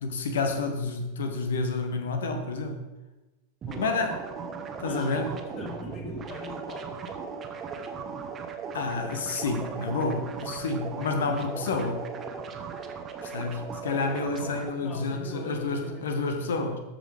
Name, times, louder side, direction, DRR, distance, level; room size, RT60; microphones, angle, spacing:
voice 1, 0.0-2.8 3.8-4.2 4.8-5.3 8.7-12.0 13.2-16.8, left 3 dB, 60° left, 6 dB, 1.2 m, -29 dB
sound 1, 3.6-14.7, right 5 dB, 25° right, 1.0 m, -37 dB
voice 2, 3.7-4.2 4.8-7.0 11.2-11.5 14.8-16.6, left 2 dB, 30° left, 2 dB, 1.8 m, -42 dB
13.0 x 5.3 x 3.5 m, 1.1 s
figure-of-eight pair, 90°, 0 cm